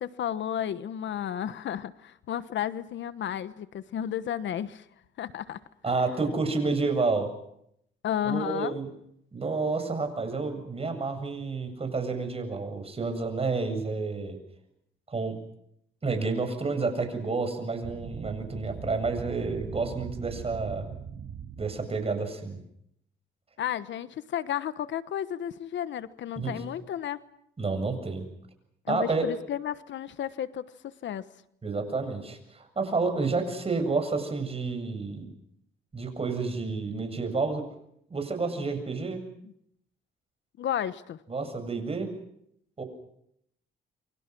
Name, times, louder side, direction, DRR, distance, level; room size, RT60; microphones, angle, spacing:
voice 1, 0.0-4.8 5.2-5.6 8.0-8.7 23.6-27.2 28.9-31.2 40.6-41.2, left 10 dB, 70° left, 14 dB, 1.2 m, -32 dB
voice 2, 5.8-7.3 8.2-8.9 9.3-14.4 15.1-15.4 16.0-20.9 21.6-22.6 26.4-26.6 27.6-28.2 28.9-29.2 31.6-35.3 35.9-37.6 38.1-39.2 41.3-42.1 42.8-42.9, right 4 dB, 30° right, 7 dB, 7.6 m, -30 dB
sound 1, 17.8-22.1, right 7 dB, 65° right, 2.4 m, -41 dB
29.0 x 24.5 x 6.2 m, 0.73 s
cardioid pair, 90°, 20 cm